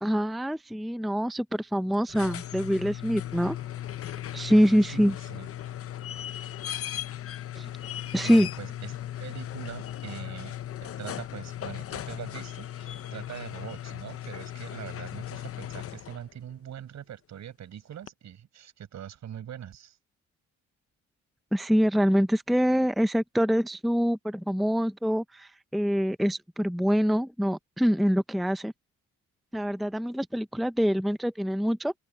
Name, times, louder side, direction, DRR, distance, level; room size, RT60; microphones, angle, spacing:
voice 1, 0.0-3.6 4.3-5.1 7.6-7.7 8.1-8.5 21.5-28.7 29.5-31.9, equal, ahead, 0.6 m, -25 dB
sound 1, 1.9-16.3 18.1-18.2, left 11 dB, 50° left, 0.8 m, -37 dB
voice 2, 4.9-5.5 8.2-20.0, right 10 dB, 65° right, 6.8 m, -42 dB
cardioid pair, 90°, 30 cm